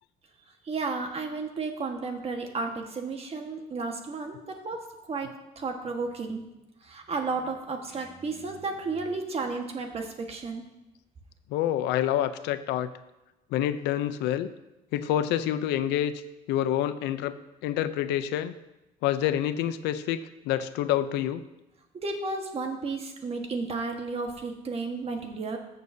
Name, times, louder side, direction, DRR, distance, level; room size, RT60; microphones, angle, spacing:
voice 1, 0.6-4.8 5.1-6.4 6.8-10.6 21.9-25.6, right 3 dB, 35° right, 4 dB, 1.4 m, -33 dB
voice 2, 11.5-12.9 13.5-14.5 14.9-16.2 16.5-17.4 17.6-18.6 19.0-21.4, left 11 dB, 90° left, 13 dB, 0.5 m, -27 dB
14.0 x 6.8 x 2.7 m, 0.98 s
cardioid pair, 110°, 17 cm